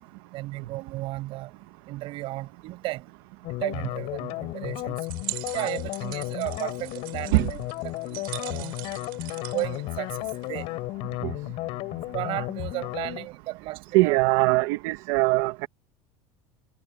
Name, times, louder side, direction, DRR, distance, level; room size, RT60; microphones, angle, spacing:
voice 1, 0.3-1.5 1.8-3.1 3.5-5.1 5.5-7.6 7.8-8.7 9.4-10.7 11.9-14.2, right 18 dB, 50° right, 6.6 m, -34 dB
sound 1, 3.4-13.3, left 21 dB, 55° left, 6.4 m, -33 dB
sound 2, 5.0-10.6, right 22 dB, 90° right, 5.6 m, -41 dB
voice 2, 13.9-15.7, right 22 dB, 70° right, 1.3 m, -22 dB
supercardioid pair, 145°, 11 cm